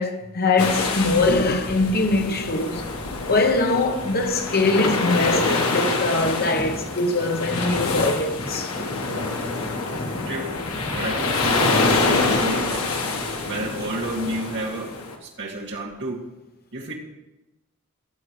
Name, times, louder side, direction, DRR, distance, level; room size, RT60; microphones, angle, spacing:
voice 1, 0.0-2.9 3.3-8.7, left 3 dB, 45° left, 1.0 m, -22 dB
sound 1, 0.6-15.1, left 3 dB, 75° left, 1.4 m, -26 dB
sound 2, 6.2-14.8, equal, 25° left, 1.9 m, -38 dB
voice 2, 10.9-12.8 13.5-14.9 15.2-16.2 16.7-16.9, right 2 dB, 55° right, 2.1 m, -30 dB
18.0 x 7.4 x 3.2 m
head